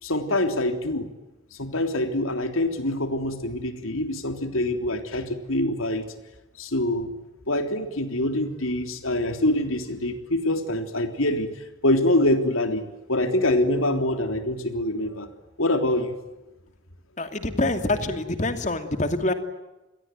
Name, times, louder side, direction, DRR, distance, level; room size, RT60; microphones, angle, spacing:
voice 1, 0.0-1.1 1.5-6.0 6.6-7.1 7.5-11.5 11.8-12.8 13.1-15.3 15.6-16.1, left 1 dB, 90° left, 7 dB, 3.5 m, -25 dB
voice 2, 17.2-19.3, left 2 dB, 35° left, 8 dB, 2.6 m, -25 dB
29.0 x 22.0 x 9.3 m, 1.0 s
head